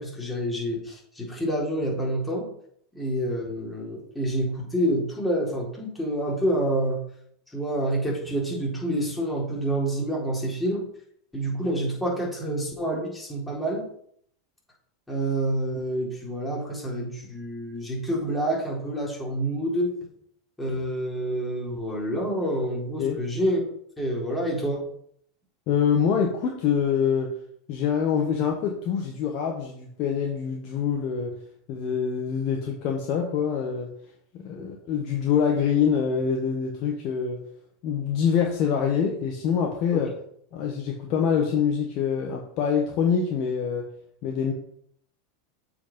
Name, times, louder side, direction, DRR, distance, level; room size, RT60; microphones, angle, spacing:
voice 1, 0.0-2.5 2.9-7.0 7.5-10.8 11.3-13.9 15.1-19.9 20.6-23.6 24.0-24.9 34.6-34.7 39.9-40.0, right 1 dB, 10° left, -4 dB, 3.9 m, -28 dB
voice 2, 25.7-27.3 27.7-31.3 31.7-33.9 34.3-37.4 37.8-40.1 40.5-43.8 44.2-44.5, left 7 dB, 50° left, 1 dB, 1.3 m, -25 dB
7.2 x 5.0 x 5.5 m, 0.66 s
hypercardioid pair, 90°, 0 cm